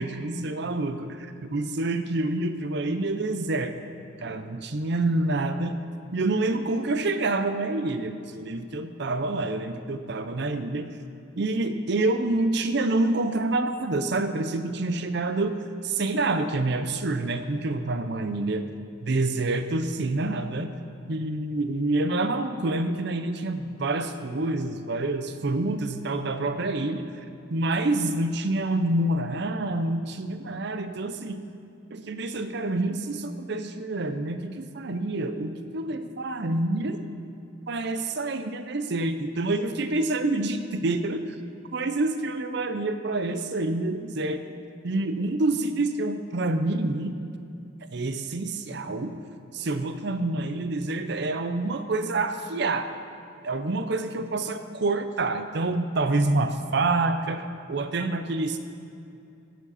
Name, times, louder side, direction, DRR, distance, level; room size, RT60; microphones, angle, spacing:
voice 1, 0.0-3.7 4.2-5.8 6.1-10.9 11.4-18.7 19.0-20.7 21.1-27.1 27.5-31.4 31.9-37.0 37.7-41.2 41.7-44.4 44.8-47.2 47.9-49.2 49.5-52.9 53.4-58.6, right 2 dB, 60° right, 9 dB, 0.6 m, -27 dB
15.0 x 7.4 x 4.2 m, 2.6 s
head